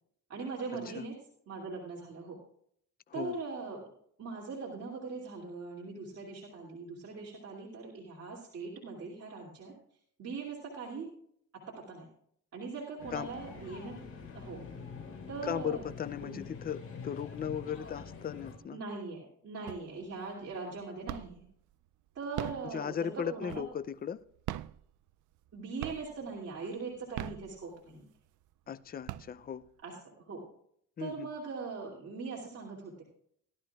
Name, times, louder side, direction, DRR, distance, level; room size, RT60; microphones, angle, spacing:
voice 1, 0.3-1.1 1.5-2.4 3.1-3.9 4.2-9.7 10.2-11.1 11.5-12.1 12.5-14.0 14.3-14.7 15.3-15.8 16.2-16.4 18.7-21.5 22.1-23.7 25.5-28.0 29.8-30.5 31.0-33.0, right 4 dB, 50° right, 2.7 m, -41 dB
sound 1, 13.0-18.6, left 5 dB, 45° left, 4.2 m, -45 dB
voice 2, 15.4-18.8 22.6-24.2 28.7-29.6 31.0-31.3, left 8 dB, 30° left, 0.5 m, -37 dB
sound 2, 19.7-20.2 20.5-21.5 22.2-23.9 24.4-25.5 25.8-26.4 27.0-28.0 28.5-28.6 28.9-29.8, right 14 dB, 75° right, 0.5 m, -41 dB
17.5 x 12.0 x 2.4 m
cardioid pair, 90°, 30 cm